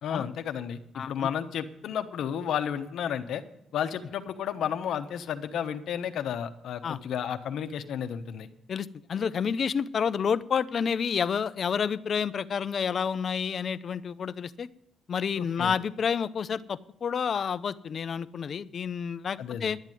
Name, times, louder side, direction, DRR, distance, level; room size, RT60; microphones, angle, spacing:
voice 1, 0.0-3.4 3.7-8.5 15.3-15.7 19.4-19.8, left 8 dB, 75° left, 9 dB, 1.0 m, -32 dB
voice 2, 0.9-1.3 6.8-7.0 8.7-14.7 15.1-19.8, left 6 dB, 50° left, 15 dB, 0.6 m, -29 dB
11.5 x 8.1 x 9.2 m, 0.77 s
cardioid pair, 90°, 0 cm